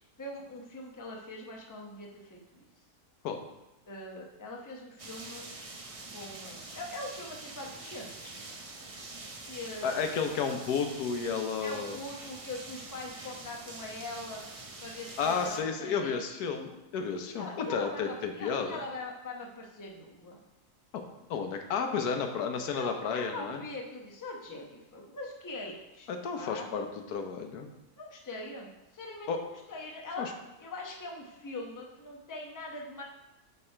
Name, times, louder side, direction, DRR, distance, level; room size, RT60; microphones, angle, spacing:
voice 1, 0.2-2.7 3.9-5.5 6.1-8.3 9.5-10.0 10.3-10.4 11.6-14.4 14.8-16.2 17.3-20.4 22.7-26.1 26.3-26.7 28.0-30.3 30.6-33.0, left 2 dB, 20° left, 0 dB, 0.6 m, -42 dB
sound 1, 5.0-15.6, right 3 dB, 50° right, 0.4 m, -45 dB
voice 2, 9.8-12.0 15.2-18.8 20.9-21.0 21.3-23.6 26.1-27.7 29.3-29.4 30.2-30.3, left 6 dB, 85° left, 5 dB, 1.3 m, -32 dB
9.5 x 3.3 x 4.3 m, 0.96 s
omnidirectional pair, 1.6 m